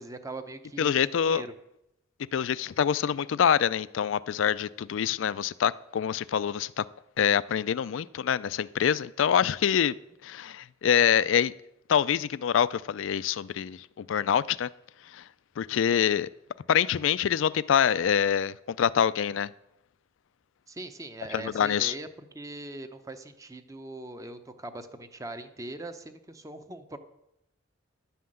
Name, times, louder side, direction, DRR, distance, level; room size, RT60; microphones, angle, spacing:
voice 1, 0.0-1.5 20.7-27.0, right 2 dB, 15° right, 0.7 m, -41 dB
voice 2, 0.8-1.4 2.3-6.9 7.2-9.9 10.2-11.5 11.9-14.7 15.1-15.2 15.6-16.3 16.7-19.5 21.3-21.9, left 8 dB, 70° left, 0.3 m, -25 dB
11.0 x 5.7 x 7.7 m
head